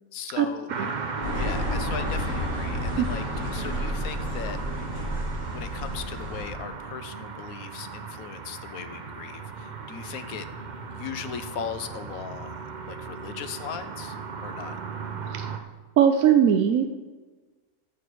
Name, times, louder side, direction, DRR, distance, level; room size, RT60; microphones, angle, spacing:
voice 1, 0.1-0.9 1.3-4.6 5.5-10.5 10.9-14.8, left 8 dB, 85° left, 10 dB, 1.2 m, -38 dB
sound 1, 0.7-15.6, right 5 dB, 45° right, 0.7 m, -37 dB
sound 2, 1.2-6.4, left 1 dB, 65° left, 4.8 m, -31 dB
voice 2, 16.0-16.9, right 9 dB, 75° right, 7 dB, 1.0 m, -20 dB
13.5 x 6.7 x 4.7 m, 1.3 s
omnidirectional pair, 1.5 m